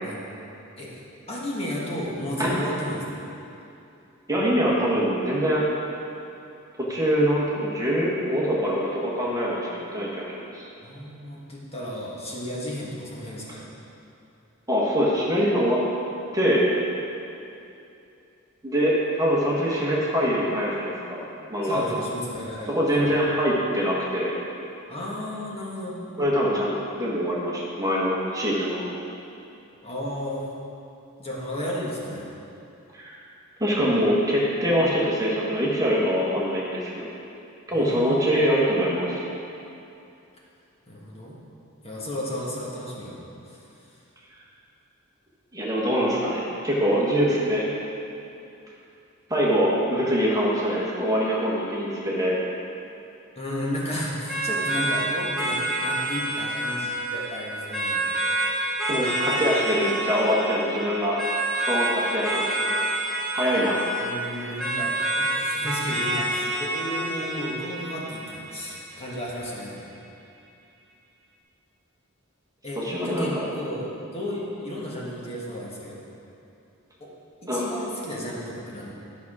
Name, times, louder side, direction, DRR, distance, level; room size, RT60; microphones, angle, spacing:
voice 1, 0.0-0.3 0.8-1.0 1.3-3.0 10.8-13.6 19.9-20.0 21.1-21.3 21.6-23.0 24.9-26.0 29.8-30.4 31.2-32.3 37.7-38.6 40.9-41.4 41.8-43.6 53.4-58.1 64.0-69.9 72.6-76.0 77.0-77.1 77.4-78.9, equal, 30° left, -5 dB, 1.5 m, -33 dB
voice 2, 4.3-5.7 6.8-10.7 14.7-15.8 16.3-16.6 18.6-21.2 21.5-21.8 22.7-24.3 26.2-28.8 32.9-33.2 33.6-37.1 37.7-39.2 45.5-47.7 49.3-52.3 58.9-61.2 61.7-62.7 63.3-63.8 72.8-73.4 77.5-77.7, equal, 15° right, -5 dB, 1.4 m, -24 dB
sound 1, 54.3-69.3, right 1 dB, ahead, 1.8 m, -28 dB
11.5 x 6.0 x 4.9 m, 2.7 s
head